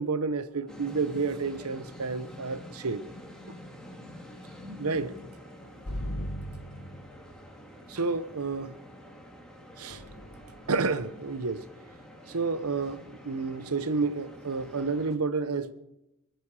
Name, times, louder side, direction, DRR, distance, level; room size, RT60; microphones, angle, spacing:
voice 1, 0.0-3.0 4.6-5.1 7.9-8.8 9.8-10.0 10.7-11.7 12.3-15.7, right 4 dB, 85° right, 1.0 m, -30 dB
sound 1, 0.7-15.2, equal, 5° left, 2.2 m, -48 dB
sound 2, 5.9-7.6 9.9-10.8, equal, 75° left, 1.7 m, -38 dB
23.0 x 9.3 x 4.9 m
head